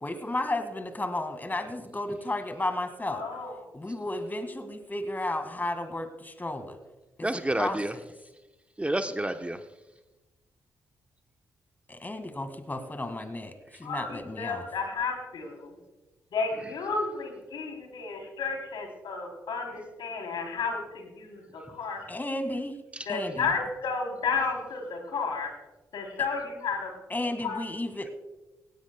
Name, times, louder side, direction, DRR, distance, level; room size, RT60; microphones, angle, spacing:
voice 1, 0.0-3.2 3.7-6.8 7.6-7.8 11.9-13.5 13.8-14.7 22.1-22.7 23.1-23.5 27.1-28.1, left 2 dB, 25° left, 1.8 m, -33 dB
voice 2, 3.1-3.6 13.8-15.7 16.3-22.0 23.0-25.5 25.9-26.9 27.4-27.6, left 4 dB, 70° left, 3.3 m, -32 dB
voice 3, 7.2-8.0 8.8-9.6 16.6-16.7 22.9-23.1, right 1 dB, 15° right, 0.9 m, -30 dB
17.5 x 17.0 x 2.2 m
hypercardioid pair, 40°, 8 cm